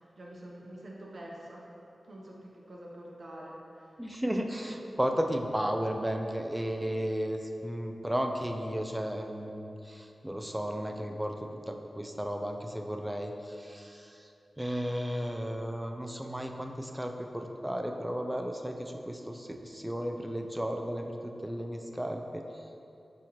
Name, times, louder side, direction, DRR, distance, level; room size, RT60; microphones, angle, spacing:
voice 1, 0.0-4.0, right 1 dB, 60° right, -3 dB, 0.7 m, -47 dB
voice 2, 4.0-14.3 14.6-22.7, equal, 10° right, 4 dB, 0.3 m, -34 dB
6.2 x 2.9 x 2.9 m, 2.8 s
wide cardioid pair, 80°, 0 cm